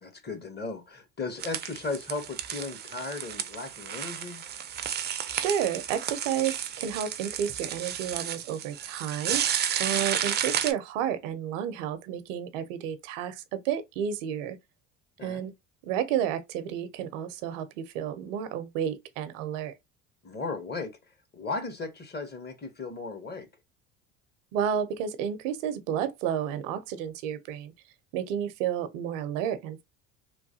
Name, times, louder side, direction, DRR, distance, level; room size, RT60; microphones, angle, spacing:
voice 1, 0.0-4.4 9.9-10.0 15.2-15.5 20.2-20.9 21.3-23.5, left 3 dB, 25° left, 0.9 m, -36 dB
sound 1, 1.4-10.7, right 9 dB, 30° right, 0.4 m, -32 dB
voice 2, 5.3-14.6 15.2-15.5 15.8-19.7 24.5-27.7 28.1-29.8, right 9 dB, 80° right, 0.6 m, -31 dB
3.1 x 2.2 x 2.6 m
hypercardioid pair, 75°, 37 cm